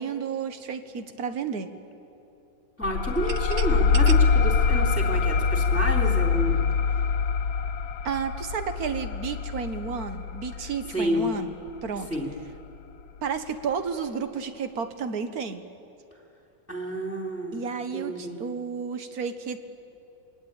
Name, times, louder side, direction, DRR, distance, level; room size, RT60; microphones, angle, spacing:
voice 1, 0.0-1.7 8.0-11.5 11.8-12.1 13.2-15.6 17.5-19.6, right 6 dB, 55° right, 9 dB, 1.6 m, -32 dB
sound 1, 2.8-12.0, left 5 dB, 85° left, 1.6 m, -24 dB
voice 2, 2.8-6.6 10.9-11.3 12.1-12.3 16.7-17.6 17.9-18.4, right 1 dB, 5° left, 1 dB, 3.2 m, -29 dB
sound 2, 3.0-5.8, right 7 dB, 80° right, 0.5 m, -40 dB
27.5 x 20.5 x 8.9 m, 2.8 s
omnidirectional pair, 2.1 m